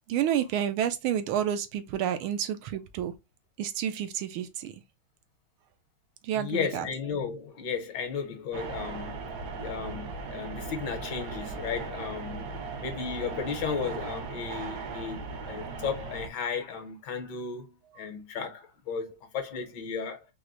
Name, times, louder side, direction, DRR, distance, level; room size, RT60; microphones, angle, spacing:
voice 1, 0.1-3.1 3.6-4.7 6.2-6.9, right 10 dB, 85° right, 1.5 m, -29 dB
voice 2, 6.3-9.2 9.5-12.5 12.8-20.3, left 6 dB, 65° left, 1.4 m, -34 dB
sound 1, 8.5-16.3, right 4 dB, 65° right, 1.1 m, -38 dB
4.7 x 2.1 x 3.8 m
omnidirectional pair, 2.3 m